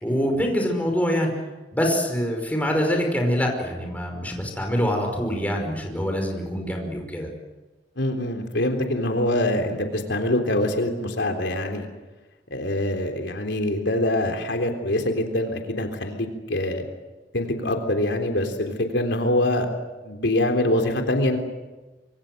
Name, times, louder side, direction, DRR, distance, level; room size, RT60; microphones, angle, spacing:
voice 1, 0.0-1.3 1.7-7.3, equal, 10° left, 2 dB, 5.4 m, -25 dB
voice 2, 8.0-11.9 12.5-16.9 17.3-19.7 20.0-21.4, left 1 dB, 80° left, 4 dB, 3.6 m, -24 dB
26.5 x 24.5 x 7.9 m, 1.2 s
head